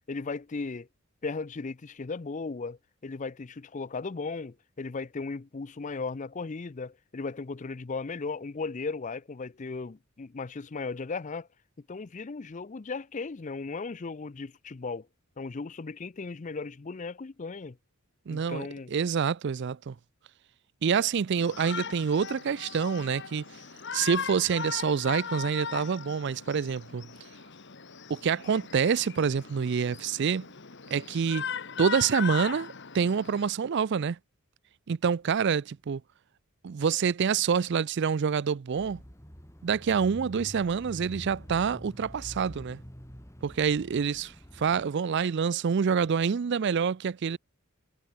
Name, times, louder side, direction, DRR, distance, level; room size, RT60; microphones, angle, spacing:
voice 1, 0.1-0.9 1.2-11.5 11.9-15.1 15.4-17.8 18.3-18.9, left 4 dB, 35° left, 0.5 m, -36 dB
voice 2, 18.3-20.0 20.8-23.4 23.9-27.1 28.1-30.5 30.9-31.4 31.8-34.2 34.9-36.0 36.6-39.0 39.6-42.8 43.4-47.4, right 6 dB, 50° right, 0.4 m, -27 dB
Shout, 21.4-33.5, left 6 dB, 55° left, 1.7 m, -38 dB
Bicycle / Mechanisms, 38.7-44.9, equal, 15° left, 3.3 m, -46 dB
head